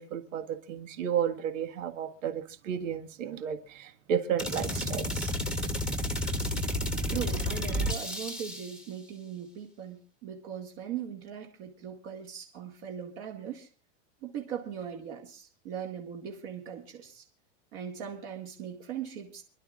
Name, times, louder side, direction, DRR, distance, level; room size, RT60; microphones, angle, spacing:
voice 1, 0.0-5.3, right 8 dB, 80° right, 1.8 m, -33 dB
sound 1, 4.4-8.8, equal, ahead, 1.2 m, -31 dB
voice 2, 7.1-13.7 14.2-17.2 17.7-19.4, right 8 dB, 45° right, 2.1 m, -39 dB
29.0 x 11.5 x 2.5 m
supercardioid pair, 175°, 38 cm